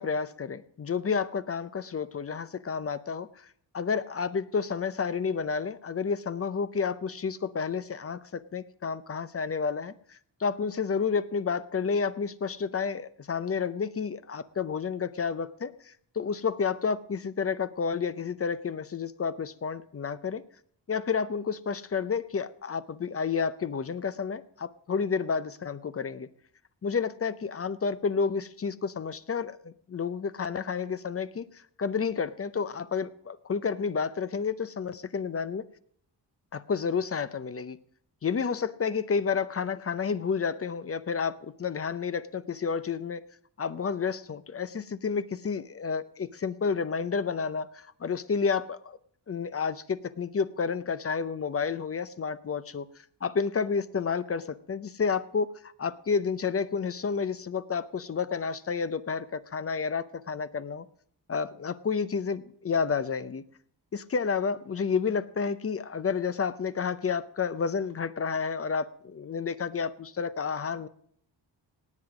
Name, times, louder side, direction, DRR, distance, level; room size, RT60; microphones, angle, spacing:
voice 1, 0.0-3.5 3.7-20.4 20.9-26.3 26.8-31.5 31.8-35.6 36.5-37.8 38.2-43.2 43.6-49.0 49.3-52.9 53.2-60.9 61.3-63.4 63.9-70.9, left 5 dB, 35° left, 14 dB, 0.7 m, -30 dB
18.5 x 7.9 x 4.9 m, 0.62 s
cardioid pair, 80°, 43 cm